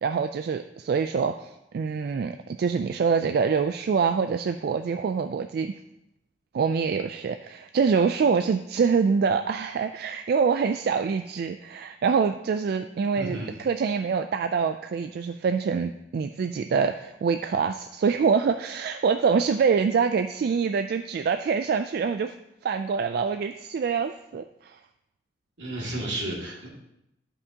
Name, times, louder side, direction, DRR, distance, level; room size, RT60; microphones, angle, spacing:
voice 1, 0.0-5.7 6.5-22.4 22.6-24.8, right 5 dB, 60° right, 8 dB, 0.3 m, -25 dB
voice 2, 13.2-13.5 25.6-26.7, right 1 dB, 85° right, -4 dB, 2.3 m, -32 dB
12.0 x 5.4 x 2.8 m, 0.83 s
head